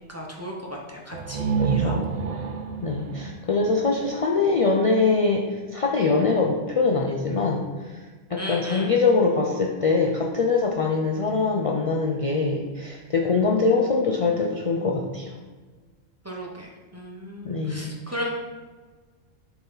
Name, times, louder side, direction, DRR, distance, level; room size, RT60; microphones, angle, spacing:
voice 1, 0.1-2.2 2.9-3.7 8.4-8.9 16.2-18.3, equal, 15° right, -2 dB, 0.6 m, -36 dB
sound 1, 1.1-4.8, right 5 dB, 80° right, 0.4 m, -29 dB
voice 2, 1.6-2.1 2.8-8.0 8.3-15.3 17.4-17.9, left 4 dB, 65° left, 0 dB, 0.3 m, -23 dB
6.9 x 4.0 x 4.0 m, 1.4 s
omnidirectional pair, 1.3 m